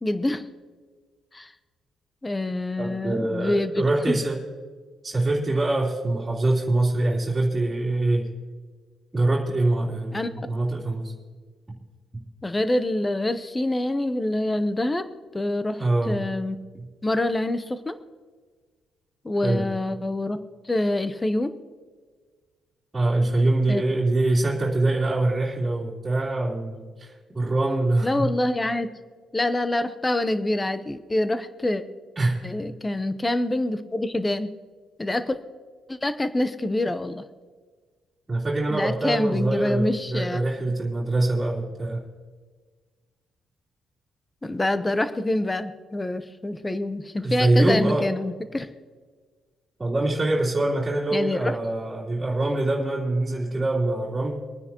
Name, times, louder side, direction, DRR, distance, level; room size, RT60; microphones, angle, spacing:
voice 1, 0.0-0.5 1.3-1.5 2.2-4.2 10.1-10.3 12.4-15.1 15.3-16.6 17.0-18.0 19.2-20.4 20.6-21.5 23.7-23.8 28.0-28.9 29.3-31.8 32.4-34.5 35.0-35.4 35.9-37.2 38.7-40.4 44.4-48.7 51.1-51.6, left 1 dB, 15° left, 11 dB, 0.8 m, -26 dB
voice 2, 2.8-4.4 5.0-8.3 9.1-11.1 12.1-12.2 15.8-16.2 19.4-19.6 22.9-28.3 32.1-32.3 38.3-42.0 47.2-48.1 49.8-54.4, right 2 dB, 20° right, -8 dB, 3.3 m, -24 dB
25.5 x 9.7 x 3.0 m, 1.5 s
cardioid pair, 90°, 0 cm